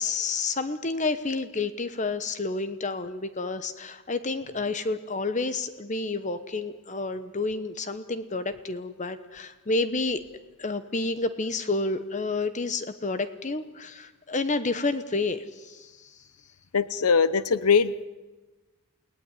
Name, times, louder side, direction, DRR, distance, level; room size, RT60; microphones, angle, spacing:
voice 1, 0.0-10.2 10.6-16.2, left 3 dB, 35° left, 12 dB, 1.0 m, -30 dB
voice 2, 16.7-18.0, left 5 dB, 85° left, 16 dB, 0.8 m, -22 dB
29.0 x 19.0 x 9.8 m, 1.2 s
head